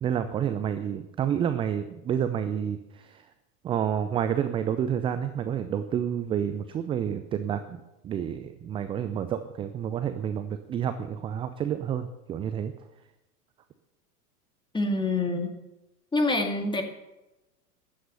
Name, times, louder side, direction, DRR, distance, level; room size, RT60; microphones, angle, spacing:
voice 1, 0.0-3.2 3.6-12.7, right 9 dB, 10° right, 10 dB, 0.4 m, -29 dB
voice 2, 14.7-15.5 16.1-16.8, left 2 dB, 10° left, 4 dB, 2.3 m, -26 dB
15.0 x 11.0 x 6.7 m, 0.99 s
figure-of-eight pair, 95°, 48 cm